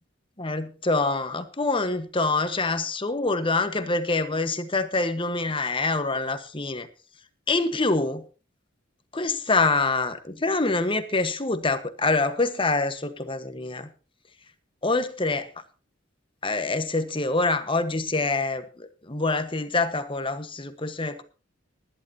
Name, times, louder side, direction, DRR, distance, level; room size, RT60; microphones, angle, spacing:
voice 1, 0.4-6.9 7.5-8.2 9.1-13.9 14.8-15.5 16.4-21.2, left 3 dB, 25° left, 1.3 m, -25 dB
19.5 x 11.5 x 2.8 m
head